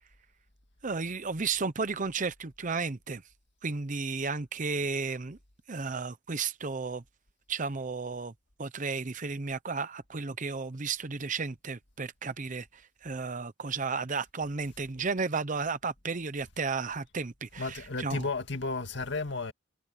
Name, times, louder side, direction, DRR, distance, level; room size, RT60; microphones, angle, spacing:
voice 1, 0.8-3.2 3.6-5.4 5.7-7.0 7.5-8.3 8.6-18.2, right 4 dB, 40° right, 0.8 m, -33 dB
voice 2, 17.6-19.5, left 3 dB, 60° left, 2.2 m, -33 dB
head